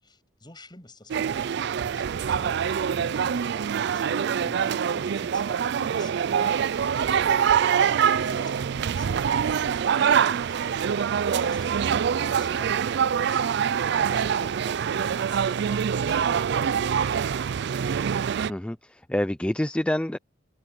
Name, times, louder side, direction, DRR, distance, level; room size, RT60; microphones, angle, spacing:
voice 1, 0.0-6.6 7.0-10.9 11.4-13.4 13.7-16.8, left 1 dB, 25° left, 6.7 m, -48 dB
sound 1, 1.1-18.5, right 7 dB, 60° right, 0.4 m, -25 dB
voice 2, 18.5-20.2, left 1 dB, 5° left, 0.4 m, -27 dB
head